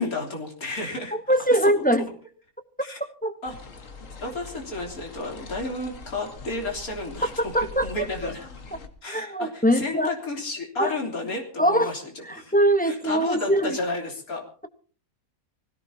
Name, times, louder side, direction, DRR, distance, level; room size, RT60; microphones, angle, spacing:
voice 1, 0.0-1.6 2.8-3.0 3.4-3.6 4.2-8.5 9.0-12.5 12.8-14.4, left 2 dB, 80° left, 1 dB, 3.8 m, -32 dB
voice 2, 1.3-2.1 3.2-3.3 7.4-7.9 9.1-10.1 10.8-10.9 11.6-11.9 12.5-13.8, right 1 dB, 5° left, 8 dB, 0.9 m, -22 dB
sound 1, 3.4-8.9, left 4 dB, 60° left, 2.0 m, -42 dB
25.5 x 16.5 x 2.8 m, 0.41 s
omnidirectional pair, 1.5 m